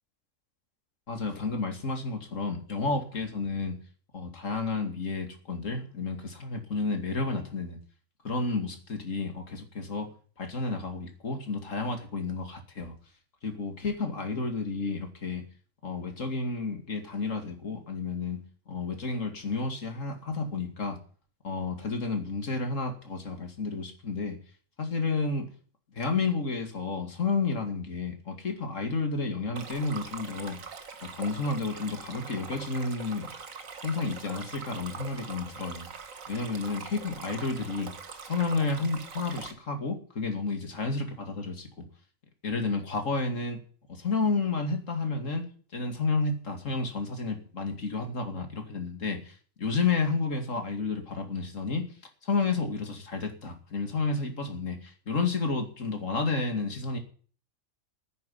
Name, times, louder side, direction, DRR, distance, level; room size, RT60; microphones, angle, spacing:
voice 1, 1.1-3.8 4.1-7.8 8.2-10.1 10.4-12.9 13.4-15.4 15.8-21.0 21.4-24.4 24.8-25.5 25.9-30.6 31.1-33.3 33.8-35.9 36.3-37.9 38.2-41.9 42.4-43.6 43.9-45.5 45.7-51.9 52.2-57.0, left 3 dB, 70° left, 5 dB, 2.8 m, -31 dB
Stream, 29.6-39.5, right 5 dB, 80° right, 1.9 m, -43 dB
9.8 x 9.6 x 9.9 m, 0.42 s
omnidirectional pair, 1.4 m